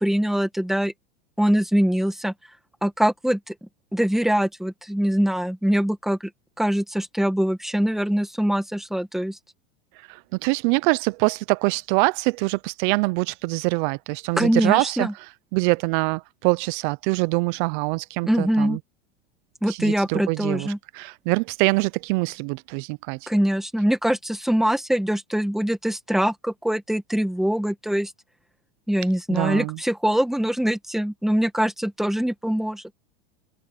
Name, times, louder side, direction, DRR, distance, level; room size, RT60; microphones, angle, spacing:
voice 1, 0.0-0.9 1.4-2.3 2.8-3.5 3.9-6.3 6.6-9.4 14.4-15.1 18.3-18.8 19.6-20.8 23.3-28.1 28.9-32.8, equal, ahead, 1.9 m, -23 dB
voice 2, 10.0-15.1 15.5-18.8 19.7-23.3 29.3-29.8, right 27 dB, 55° right, 0.6 m, -24 dB
supercardioid pair, 125°, 30 cm